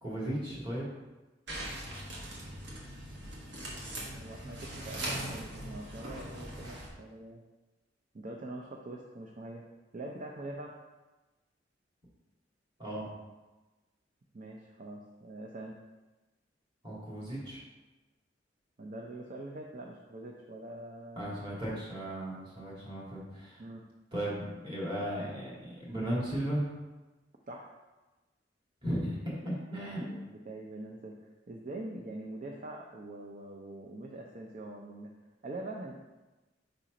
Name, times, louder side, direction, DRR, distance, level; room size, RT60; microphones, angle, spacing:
voice 1, 0.0-0.9 12.8-13.1 16.8-17.6 21.2-23.6 24.1-26.6 28.8-30.1, right 1 dB, 25° right, -6 dB, 2.1 m, -36 dB
sound 1, 1.5-6.9, right 1 dB, 65° right, 1.4 m, -41 dB
voice 2, 3.9-7.4 8.1-9.6 9.9-10.8 14.3-15.8 18.8-21.3 23.6-23.8 27.5-27.7 29.7-31.1 31.5-35.1 35.4-35.9, right 2 dB, 45° right, 0 dB, 0.5 m, -44 dB
5.0 x 4.3 x 5.0 m, 1.2 s
head